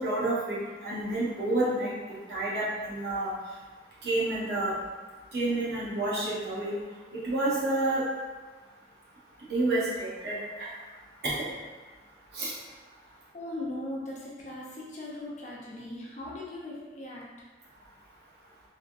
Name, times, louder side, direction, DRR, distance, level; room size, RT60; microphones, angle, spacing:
voice 1, 0.0-1.9 2.3-3.3 4.0-4.7 5.3-6.7 7.1-8.0 9.5-10.7 11.2-11.4 12.3-12.5, right 2 dB, 65° right, -8 dB, 1.0 m, -29 dB
voice 2, 13.3-17.5, left 1 dB, 40° left, -5 dB, 0.6 m, -39 dB
3.3 x 2.4 x 2.5 m, 1.3 s
head